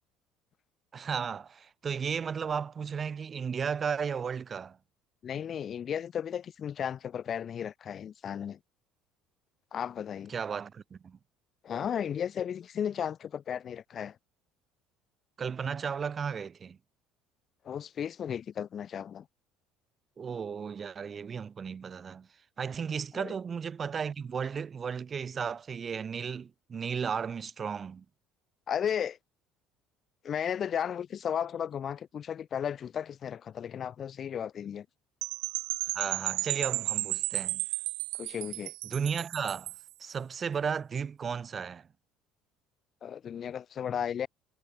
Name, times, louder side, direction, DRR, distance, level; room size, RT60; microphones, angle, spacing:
voice 1, 0.9-4.8 10.3-11.2 15.4-16.8 20.2-22.3 22.6-28.0 35.9-37.6 38.9-39.7 40.0-41.9, right 6 dB, 30° right, 5.1 m, -34 dB
voice 2, 5.2-8.6 9.7-10.3 11.6-14.2 17.6-19.3 23.1-23.3 28.7-29.2 30.2-34.9 38.2-38.7 43.0-44.3, left 8 dB, 40° left, 3.7 m, -34 dB
Percussion / Wind chime, 35.2-39.9, right 33 dB, 90° right, 1.0 m, -33 dB
cardioid pair, 130°, 0 cm